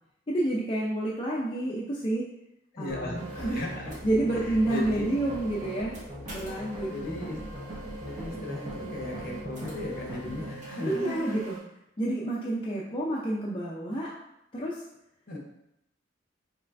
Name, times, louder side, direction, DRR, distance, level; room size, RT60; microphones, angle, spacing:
voice 1, 0.3-2.3 2.8-3.6 4.0-6.0 6.3-7.3 10.8-11.6 12.0-14.1 14.5-14.8, right 1 dB, 25° left, -5 dB, 0.5 m, -29 dB
voice 2, 2.7-4.0 4.3-5.0 6.9-7.4 8.0-11.4 15.3-15.4, left 2 dB, 50° left, -1 dB, 1.1 m, -36 dB
sound 1, 2.9-10.6, equal, 25° right, 1.0 m, -40 dB
sound 2, 3.1-11.6, right 3 dB, 40° right, 1.6 m, -45 dB
5.3 x 3.2 x 2.6 m, 0.81 s
head